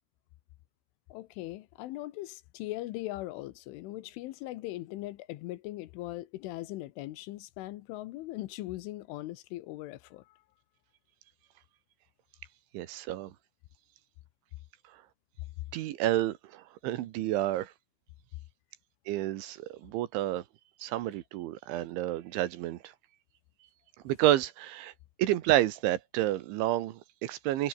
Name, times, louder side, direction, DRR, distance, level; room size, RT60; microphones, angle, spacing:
voice 1, 1.1-10.4, left 17 dB, 80° left, 3.4 m, -40 dB
voice 2, 12.7-13.3 15.7-17.7 19.1-20.4 20.8-22.9 24.1-24.9 25.2-27.7, right 14 dB, 75° right, 3.5 m, -30 dB
omnidirectional pair, 5.7 m